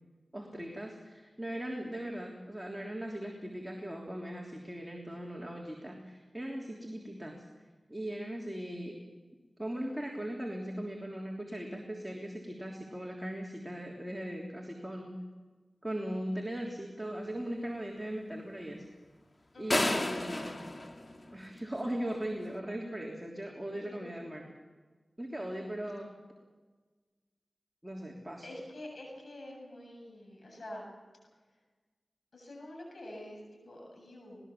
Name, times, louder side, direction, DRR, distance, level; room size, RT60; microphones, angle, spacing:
voice 1, 0.3-7.5 7.9-9.0 9.6-15.1 15.8-18.8 19.6-20.5 21.3-24.4 25.2-26.1 27.8-28.5, right 1 dB, 10° right, 0 dB, 3.3 m, -39 dB
voice 2, 19.5-20.2 23.7-24.0 25.6-25.7 28.4-30.8 32.3-34.4, left 1 dB, 75° left, 0 dB, 7.7 m, -47 dB
sound 1, 19.7-21.9, left 1 dB, 40° left, 2.5 m, -32 dB
20.0 x 20.0 x 7.3 m, 1.3 s
cardioid pair, 45°, 0 cm